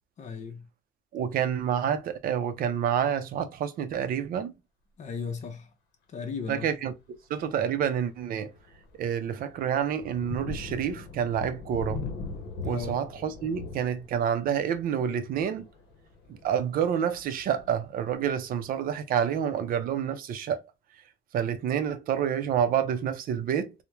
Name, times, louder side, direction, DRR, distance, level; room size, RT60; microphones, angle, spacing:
voice 1, 0.2-0.7 5.0-5.7 6.1-6.7 12.6-13.0, left 5 dB, 45° left, 0.6 m, -36 dB
voice 2, 1.1-4.5 6.5-6.9 7.3-8.5 9.0-12.0 12.6-15.7 16.3-20.6 21.3-23.7, right 8 dB, 60° right, 0.5 m, -28 dB
Thunder, 6.4-6.7 7.3-7.5 7.9-18.5, left 3 dB, 80° left, 0.7 m, -41 dB
3.0 x 2.1 x 2.2 m
cardioid pair, 110°, 17 cm